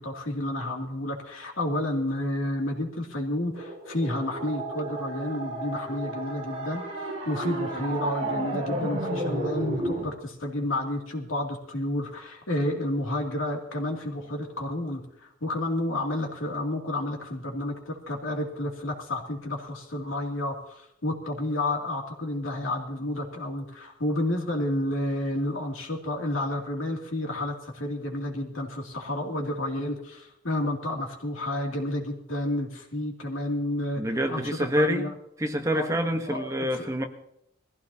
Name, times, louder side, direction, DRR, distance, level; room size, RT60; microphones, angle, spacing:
voice 1, 0.0-15.0 15.4-34.4 34.8-35.1 35.7-35.9 36.3-36.9, left 1 dB, 80° left, 2.7 m, -30 dB
sound 1, 3.5-10.1, right 1 dB, 30° right, 5.2 m, -32 dB
voice 2, 34.0-35.1 35.4-37.1, equal, 15° right, 1.1 m, -27 dB
21.5 x 15.5 x 2.8 m
head